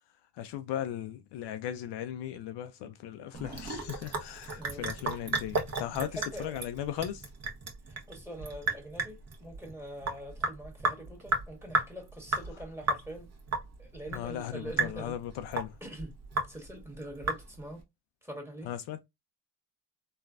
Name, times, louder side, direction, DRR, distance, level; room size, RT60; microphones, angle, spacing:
voice 1, 0.4-7.3 14.1-15.7 18.6-19.0, left 11 dB, 65° left, 0.5 m, -37 dB
Sink (filling or washing) / Drip, 3.3-17.8, right 3 dB, 35° right, 1.1 m, -34 dB
voice 2, 4.6-4.9 6.1-6.5 8.1-13.3 13.8-15.1 15.8-16.1 16.5-17.8 18.2-18.7, right 1 dB, 5° right, 1.4 m, -43 dB
3.1 x 2.3 x 2.4 m
supercardioid pair, 75°, 45 cm